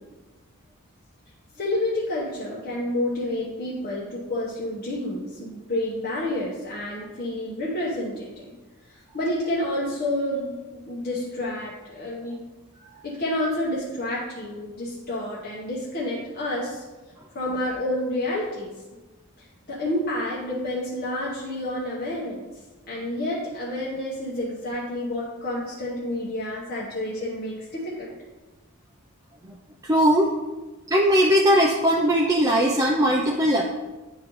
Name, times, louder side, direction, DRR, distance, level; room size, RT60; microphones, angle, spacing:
voice 1, 1.6-8.5 8.9-12.4 13.0-16.8 17.3-18.7 19.4-22.4 22.9-28.1, left 1 dB, 45° left, -6 dB, 1.0 m, -29 dB
voice 2, 29.8-30.3 30.9-33.6, equal, 15° right, -2 dB, 0.4 m, -19 dB
10.0 x 3.8 x 3.1 m, 1.2 s
head